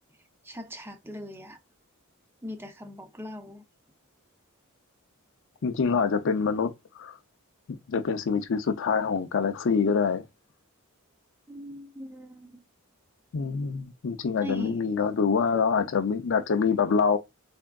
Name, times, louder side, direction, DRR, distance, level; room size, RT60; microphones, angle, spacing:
voice 1, 0.4-1.6 2.4-3.6 11.5-12.6 14.4-14.8, left 1 dB, 10° right, 0.5 m, -40 dB
voice 2, 5.6-7.2 7.7-10.2 13.3-17.2, left 5 dB, 60° left, 0.5 m, -25 dB
3.6 x 3.4 x 2.2 m
head